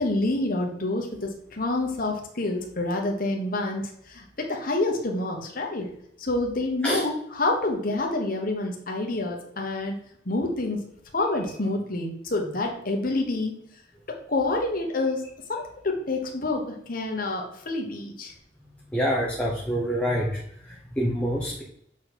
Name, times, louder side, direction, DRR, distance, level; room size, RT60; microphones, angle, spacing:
voice 1, 0.0-5.9 6.2-10.0 10.2-10.9 11.1-13.5 14.1-15.2 15.5-18.3, left 2 dB, 50° left, 1 dB, 1.2 m, -28 dB
voice 2, 18.9-21.6, equal, 5° left, -2 dB, 0.9 m, -26 dB
7.3 x 4.6 x 4.2 m, 0.71 s
head